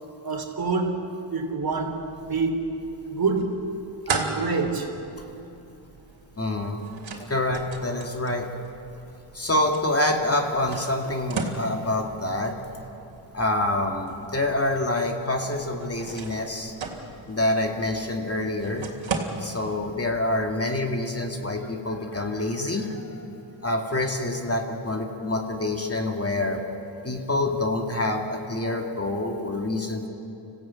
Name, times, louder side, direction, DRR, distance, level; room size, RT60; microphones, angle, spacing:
voice 1, 0.2-1.0 1.3-2.6 3.1-3.6 4.1-4.9, right 4 dB, 50° right, 4 dB, 3.2 m, -26 dB
sound 1, 1.7-20.8, right 4 dB, 70° right, 3.0 m, -38 dB
voice 2, 6.4-6.8 7.3-8.5 9.3-12.6 13.3-16.7 17.3-18.9 19.4-23.2 23.6-26.6 27.0-30.1, left 2 dB, 30° left, 2 dB, 2.4 m, -26 dB
26.0 x 16.0 x 9.0 m, 2.9 s
cardioid pair, 75°, 47 cm